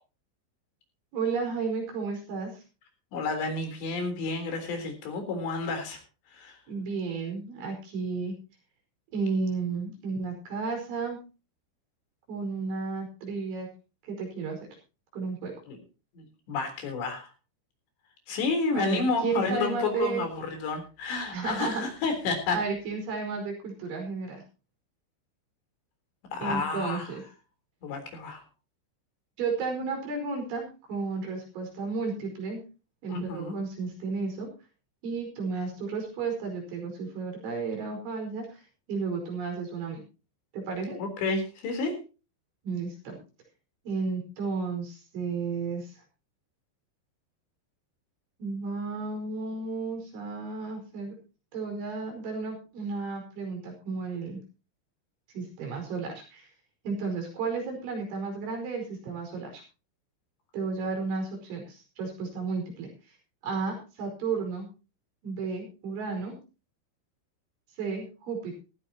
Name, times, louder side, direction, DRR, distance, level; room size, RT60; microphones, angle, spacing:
voice 1, 1.1-2.6 6.7-8.3 9.1-11.2 12.3-13.7 14.0-14.6 15.1-15.5 18.7-20.2 21.3-21.8 22.5-24.4 26.4-27.2 29.4-32.6 33.0-34.5 35.0-38.6 38.9-40.0 40.5-41.0 42.6-43.2 43.9-46.0 48.4-51.1 51.5-54.4 55.3-56.5 56.8-59.6 60.5-62.9 63.4-64.7 65.2-66.4 67.8-68.6, right 4 dB, 85° right, 2 dB, 7.4 m, -33 dB
voice 2, 3.1-6.0 6.3-6.6 15.7-15.8 16.1-17.3 18.3-22.6 26.3-27.1 27.8-28.4 33.1-33.6 41.0-42.0, left 4 dB, 70° left, 6 dB, 5.9 m, -30 dB
17.0 x 15.0 x 2.9 m, 0.33 s
omnidirectional pair, 5.2 m